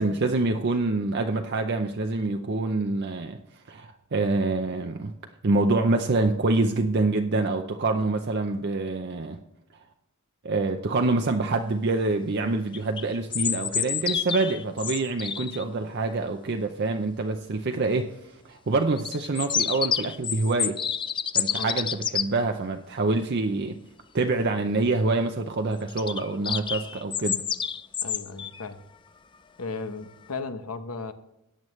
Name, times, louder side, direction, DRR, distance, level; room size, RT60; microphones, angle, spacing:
voice 1, 0.0-3.4 3.7-5.1 5.4-9.4 10.4-18.2 18.5-20.8 21.3-23.8 24.1-27.4, right 3 dB, 50° right, 5 dB, 0.6 m, -26 dB
sound 1, 12.7-15.6 19.0-22.3 25.9-28.6, left 8 dB, 20° left, 0.3 m, -29 dB
voice 2, 21.5-21.8 28.0-28.8 29.6-31.1, left 4 dB, 85° left, 9 dB, 1.0 m, -35 dB
14.0 x 9.0 x 3.2 m, 0.84 s
head